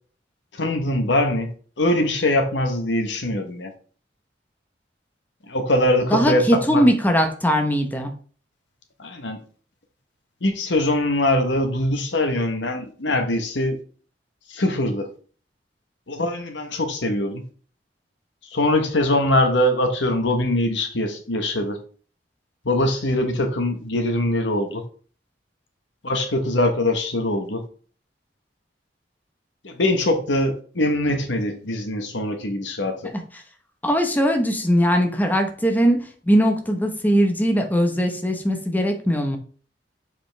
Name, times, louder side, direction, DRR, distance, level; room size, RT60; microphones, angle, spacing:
voice 1, 0.5-1.5 1.8-3.7 5.5-6.8 9.0-9.4 10.4-13.8 14.5-15.1 16.1-17.4 18.5-21.8 22.6-24.8 26.0-27.6 29.6-33.1, left 1 dB, 80° left, 1.2 m, -22 dB
voice 2, 6.1-8.1 33.8-36.0 36.2-39.4, equal, 10° left, 1.0 m, -20 dB
6.9 x 5.2 x 3.4 m
head